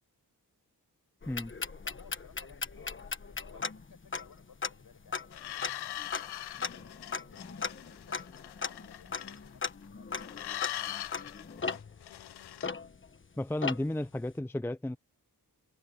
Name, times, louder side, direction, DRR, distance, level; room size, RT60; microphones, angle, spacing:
sound 1, 1.2-13.2 13.6-14.1, left 5 dB, 30° left, 1.2 m, -38 dB
voice 1, 1.8-6.2 6.7-12.0, left 6 dB, 65° left, 6.2 m, -59 dB
sound 2, 5.3-9.8 10.1-12.7, left 12 dB, 90° left, 0.6 m, -42 dB
voice 2, 13.4-15.0, left 1 dB, 5° left, 0.6 m, -33 dB
wide cardioid pair, 135°, 38 cm